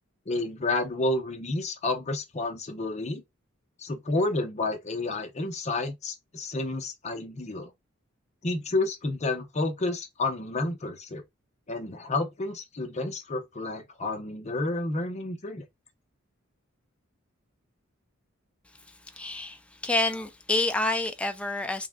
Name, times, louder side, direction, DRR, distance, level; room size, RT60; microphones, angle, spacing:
voice 1, 0.3-3.2 3.8-7.7 8.4-11.2 11.7-15.6, left 2 dB, 35° left, 0.7 m, -30 dB
voice 2, 19.1-21.9, left 2 dB, 5° left, 0.3 m, -28 dB
3.5 x 2.2 x 3.5 m
head